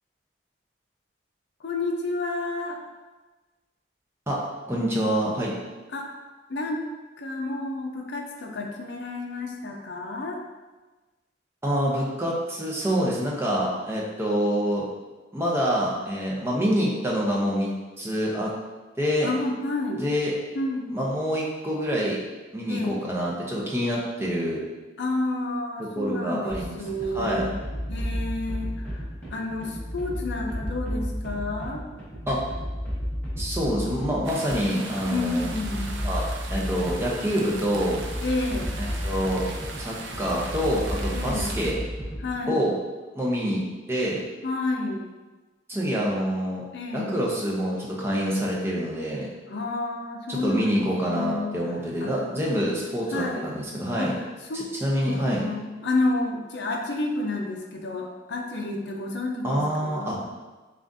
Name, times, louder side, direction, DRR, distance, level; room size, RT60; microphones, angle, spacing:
voice 1, 1.6-2.8 5.9-6.1 6.5-6.8 7.2-10.4 19.2-20.0 20.5-21.0 22.7-23.0 25.0-27.5 27.9-31.8 34.5-36.1 38.2-38.8 41.1-41.5 42.2-42.6 44.4-45.1 46.7-47.2 49.5-51.5 52.0-52.1 53.1-53.5 53.9-54.7 55.0-60.2, left 2 dB, 60° left, 1 dB, 0.5 m, -30 dB
voice 2, 4.7-5.6 11.6-14.8 15.3-18.5 19.0-19.3 20.0-20.3 20.9-22.2 22.5-24.6 25.9-26.8 27.1-27.5 32.3-32.4 33.4-35.5 36.0-38.0 39.0-39.4 39.8-41.8 42.5-42.7 43.1-44.2 45.7-46.6 46.9-49.3 50.3-54.2 54.5-55.4 59.4-60.2, equal, 10° right, -4 dB, 0.7 m, -26 dB
sound 1, 26.5-42.4, equal, 10° left, 1.0 m, -33 dB
sound 2, 34.2-41.7, right 3 dB, 70° right, 0.5 m, -39 dB
7.2 x 2.5 x 2.6 m, 1.2 s
head